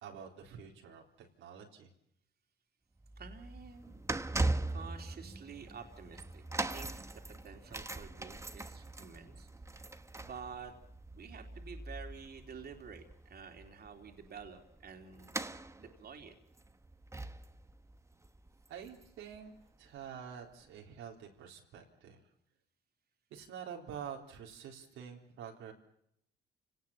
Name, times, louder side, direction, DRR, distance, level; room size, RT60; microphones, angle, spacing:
voice 1, 0.0-1.9 18.7-19.5 19.8-22.2 23.3-25.7, right 8 dB, 90° right, 1 dB, 3.9 m, -47 dB
sound 1, 3.0-19.4 19.6-19.9 20.6-20.7, right 2 dB, 15° right, 1.2 m, -41 dB
voice 2, 3.2-4.0 4.7-7.0 7.4-9.5 10.2-10.7 11.1-15.5 15.8-16.3, right 6 dB, 50° right, 4 dB, 3.3 m, -50 dB
29.5 x 18.5 x 7.3 m, 0.74 s
cardioid pair, 90°, 20 cm